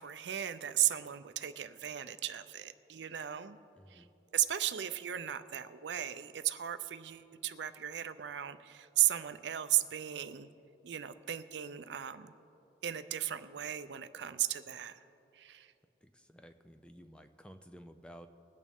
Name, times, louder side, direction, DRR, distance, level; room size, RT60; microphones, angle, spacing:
voice 1, 0.0-3.6 3.9-4.1 4.3-10.5 10.8-12.3 12.8-15.0 15.3-15.7, right 12 dB, 75° right, 12 dB, 0.5 m, -35 dB
voice 2, 3.8-4.1 16.0-18.3, equal, 5° left, 8 dB, 0.4 m, -54 dB
20.5 x 8.6 x 3.5 m, 2.9 s
head